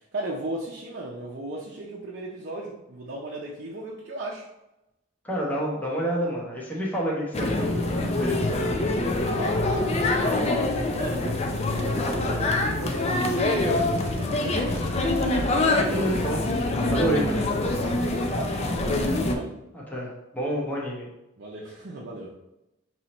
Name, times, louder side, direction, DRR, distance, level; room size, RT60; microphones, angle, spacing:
voice 1, 0.1-4.5 9.3-10.4 10.9-14.9 17.8-19.5 21.4-22.3, right 2 dB, 60° right, -3 dB, 0.6 m, -36 dB
voice 2, 5.2-8.8 15.9-16.4 16.9-17.5 19.7-21.1, equal, 10° left, -4 dB, 0.9 m, -29 dB
sound 1, 7.3-19.3, left 2 dB, 30° left, 0.4 m, -25 dB
5.5 x 3.0 x 3.0 m, 0.93 s
head